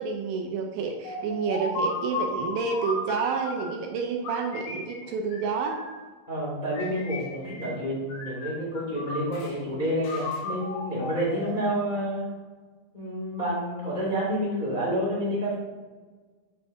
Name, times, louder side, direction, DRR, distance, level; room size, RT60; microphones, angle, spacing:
voice 1, 0.0-5.8, right 5 dB, 80° right, 2 dB, 2.3 m, -29 dB
sound 1, 1.0-3.8 4.2-6.0 6.7-7.8 8.1-9.5 10.0-11.8, left 2 dB, 65° left, 2.4 m, -35 dB
voice 2, 6.3-12.2 12.9-15.5, equal, 25° left, -7 dB, 0.9 m, -29 dB
8.5 x 5.6 x 2.6 m, 1.4 s
omnidirectional pair, 4.5 m